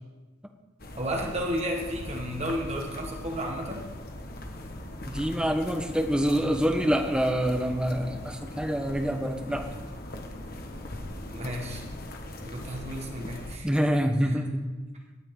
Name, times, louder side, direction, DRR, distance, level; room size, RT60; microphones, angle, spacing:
sound 1, 0.8-13.6, left 1 dB, 50° left, 1.4 m, -40 dB
voice 1, 1.0-3.8 11.3-11.8 12.4-13.8 14.2-14.4, equal, 30° right, 1 dB, 1.5 m, -33 dB
voice 2, 5.1-9.7 13.6-14.6, equal, 5° right, 5 dB, 1.0 m, -26 dB
19.0 x 12.0 x 3.8 m, 1.3 s
head